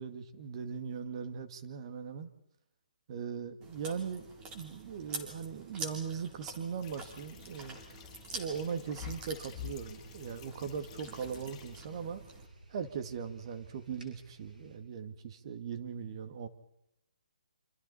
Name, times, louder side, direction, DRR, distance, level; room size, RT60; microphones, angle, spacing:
voice 1, 0.0-2.3 3.1-4.3 4.5-7.8 8.3-12.2 12.7-16.5, right 6 dB, 40° right, 9 dB, 2.1 m, -39 dB
Chewing mastication, 3.6-12.5, right 3 dB, 20° right, 3.6 m, -47 dB
sound 1, 6.8-11.8, left 12 dB, 20° left, 5.0 m, -49 dB
sound 2, 9.3-14.8, right 2 dB, 85° right, 7.0 m, -57 dB
28.5 x 26.5 x 4.3 m, 0.83 s
hypercardioid pair, 150°, 4 cm